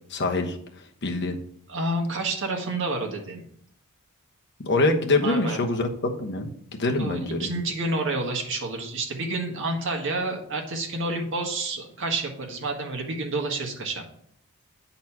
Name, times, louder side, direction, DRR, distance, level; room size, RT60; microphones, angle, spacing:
voice 1, 0.1-0.6 1.0-1.4 4.6-7.5, left 2 dB, 50° left, 3 dB, 1.2 m, -25 dB
voice 2, 1.7-3.4 5.2-5.6 7.0-14.0, right 2 dB, 60° right, 2 dB, 1.7 m, -29 dB
9.3 x 4.2 x 5.9 m, 0.67 s
head